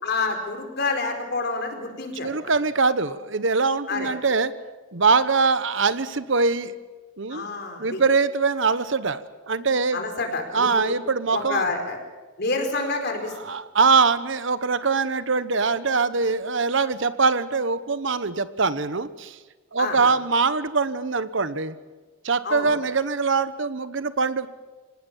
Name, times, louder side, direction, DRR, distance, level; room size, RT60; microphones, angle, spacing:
voice 1, 0.0-2.5 3.9-4.1 7.3-8.0 9.9-10.9 11.3-12.0 12.4-13.3 19.8-20.1 22.4-22.7, left 3 dB, 55° left, 5 dB, 4.6 m, -28 dB
voice 2, 2.2-4.5 4.9-6.7 7.2-7.5 7.8-10.0 10.5-11.6 13.4-19.4 19.7-21.7 22.2-24.5, right 4 dB, 65° right, 14 dB, 1.1 m, -23 dB
25.0 x 19.0 x 7.4 m, 1.3 s
head